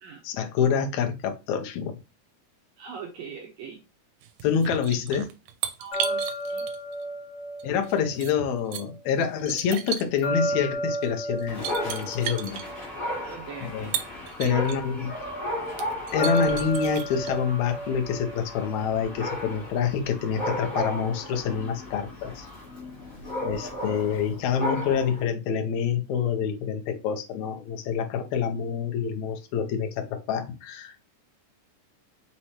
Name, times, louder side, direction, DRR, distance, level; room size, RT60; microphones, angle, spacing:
voice 1, 0.2-2.0 4.4-5.3 7.6-12.6 13.6-14.0 14.4-15.1 16.1-22.5 23.4-31.0, left 7 dB, 75° left, 5 dB, 1.9 m, -27 dB
voice 2, 2.8-3.8 5.8-6.2 6.5-6.7 13.2-13.9 14.4-14.7, right 5 dB, 75° right, 0 dB, 1.8 m, -40 dB
sound 1, 4.2-7.0 7.6-8.8 9.4-10.2 11.0-11.1 11.4-12.7 13.7-14.8 15.3-15.4 15.7-17.3, right 10 dB, 90° right, 2.2 m, -34 dB
sound 2, 5.9-9.0 10.2-13.7 16.2-19.3, right 1 dB, 50° left, 2.3 m, -32 dB
Dog, 11.5-25.2, left 1 dB, 35° left, 1.6 m, -35 dB
5.4 x 3.0 x 2.9 m, 0.29 s
omnidirectional pair, 3.7 m